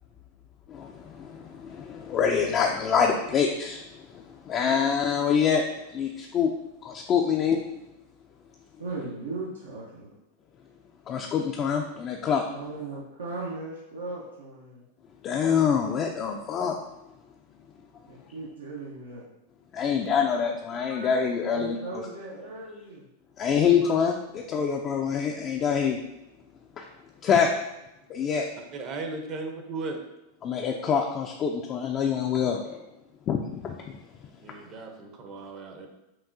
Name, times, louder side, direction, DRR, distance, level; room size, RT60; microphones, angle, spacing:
voice 1, 1.6-3.8 4.5-5.6 5.9-6.5 6.8-7.6 11.1-12.4 15.2-16.8 19.7-22.0 23.4-26.0 26.8-26.9 27.2-27.5 28.1-28.5 30.4-32.8 33.3-33.7, left 7 dB, 35° left, 1 dB, 0.4 m, -25 dB
voice 2, 8.8-10.1 12.5-14.8 18.1-19.2 21.5-23.1, right 3 dB, 90° right, -5 dB, 0.8 m, -37 dB
voice 3, 28.7-30.0 34.4-35.9, right 3 dB, 40° right, 4 dB, 0.7 m, -36 dB
5.8 x 2.4 x 2.6 m, 0.92 s
hypercardioid pair, 115°, 0 cm